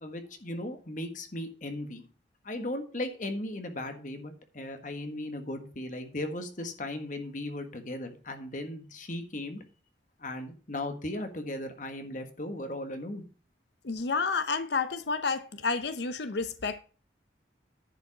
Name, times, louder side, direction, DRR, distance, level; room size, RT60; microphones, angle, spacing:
voice 1, 0.0-2.0 2.4-9.6 10.2-13.2, left 1 dB, 45° left, 1.5 m, -37 dB
voice 2, 13.8-16.8, left 4 dB, 65° left, 0.7 m, -30 dB
10.5 x 5.3 x 6.0 m
head